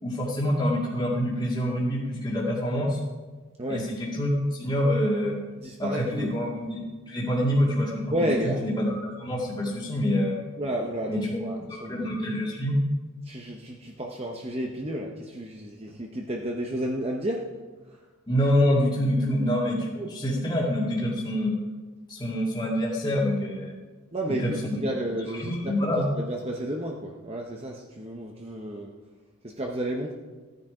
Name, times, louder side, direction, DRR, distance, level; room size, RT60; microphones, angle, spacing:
voice 1, 0.0-3.0 3.7-5.4 5.8-6.8 7.1-7.9 8.2-8.3 8.6-10.3 11.1-12.8 18.3-21.5 22.1-23.8 24.3-24.9 25.3-26.1, equal, 20° left, -4 dB, 2.2 m, -26 dB
voice 2, 5.6-6.3 8.1-8.6 10.6-12.1 13.2-17.5 20.0-20.1 24.1-28.9 29.4-30.1, right 1 dB, 30° right, 0 dB, 1.0 m, -32 dB
Piano, 6.1-7.1, left 2 dB, 40° left, 3.0 m, -39 dB
15.0 x 9.7 x 5.0 m, 1.3 s
head